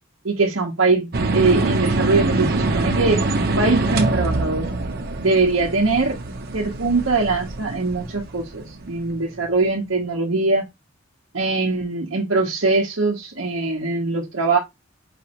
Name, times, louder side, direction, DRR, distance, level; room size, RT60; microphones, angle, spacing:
voice 1, 0.2-4.7 5.2-6.2 6.5-10.6 11.3-14.6, right 3 dB, 75° right, 1.0 m, -22 dB
sound 1, 1.1-9.2, right 2 dB, 50° right, 0.8 m, -24 dB
5.1 x 3.1 x 2.9 m
head